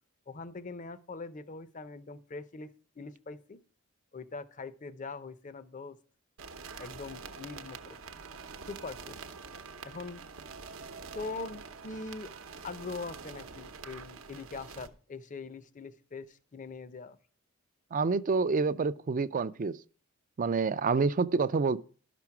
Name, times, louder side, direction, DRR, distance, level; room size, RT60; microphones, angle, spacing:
voice 1, 0.3-2.7 3.0-3.6 4.1-6.0 6.8-8.0 8.7-9.2 9.8-10.2 11.1-12.3 12.6-17.2, left 3 dB, 40° left, 0.6 m, -42 dB
sound 1, 6.4-14.9, right 5 dB, 85° right, 0.8 m, -46 dB
voice 2, 17.9-19.8 20.4-21.8, right 4 dB, 40° right, 0.4 m, -28 dB
11.5 x 6.1 x 5.8 m
head